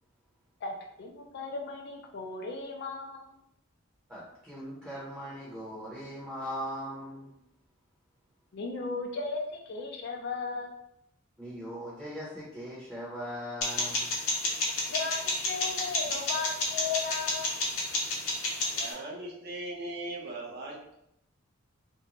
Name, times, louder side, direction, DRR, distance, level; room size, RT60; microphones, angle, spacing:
voice 1, 0.6-3.4 8.5-10.7 14.9-17.5, left 4 dB, 50° left, 1 dB, 0.4 m, -36 dB
voice 2, 4.1-7.3 11.4-14.1, equal, 10° right, -9 dB, 0.7 m, -39 dB
sound 1, 13.6-18.9, left 2 dB, 75° left, 0.8 m, -31 dB
voice 3, 18.7-21.0, right 2 dB, 50° right, -2 dB, 0.7 m, -39 dB
2.6 x 2.1 x 2.9 m, 0.78 s
head